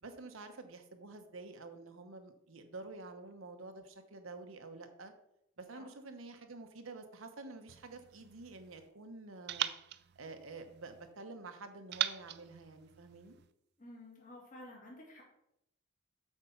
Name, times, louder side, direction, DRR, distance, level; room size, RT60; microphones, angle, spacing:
voice 1, 0.0-5.1 5.6-9.7 10.1-13.4, right 3 dB, 80° right, 6 dB, 1.0 m, -49 dB
sound 1, 7.7-8.9 9.5-11.1 11.9-13.5, right 12 dB, 55° right, 0.4 m, -41 dB
voice 2, 13.8-15.2, left 1 dB, 40° left, -2 dB, 2.3 m, -52 dB
8.2 x 4.4 x 5.7 m, 0.80 s
head